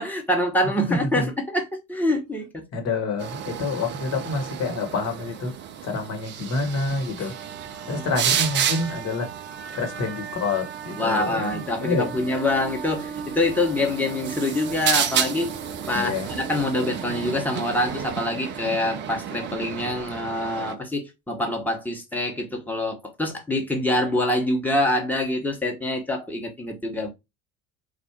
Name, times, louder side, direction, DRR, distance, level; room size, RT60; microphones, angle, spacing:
voice 1, 0.0-2.6 7.8-8.0 11.0-15.5 15.9-27.1, left 1 dB, 5° left, 1.1 m, -25 dB
voice 2, 0.9-1.3 2.7-5.5 5.8-7.3 7.9-9.3 9.7-12.1 15.9-16.3, left 3 dB, 40° left, 1.4 m, -27 dB
sound 1, 3.2-20.8, right 8 dB, 30° right, 0.5 m, -31 dB
3.5 x 2.4 x 4.4 m
figure-of-eight pair, 65°, 40 cm